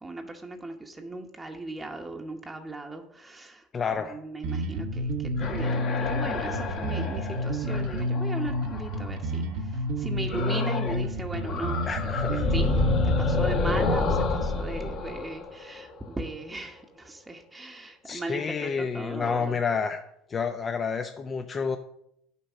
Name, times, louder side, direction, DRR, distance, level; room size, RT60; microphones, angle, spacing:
voice 1, 0.0-19.6, right 2 dB, 15° right, 2 dB, 1.0 m, -38 dB
voice 2, 3.7-4.2 11.9-12.5 18.0-20.0 20.3-21.8, left 5 dB, 30° left, 6 dB, 0.7 m, -29 dB
Bass guitar, 4.4-14.0, equal, 65° right, 1.0 m, -30 dB
sound 1, 5.3-9.2 10.3-11.0 11.3-16.2, left 3 dB, 50° left, 1.6 m, -29 dB
8.3 x 5.2 x 7.1 m, 0.75 s
hypercardioid pair, 70°, 0 cm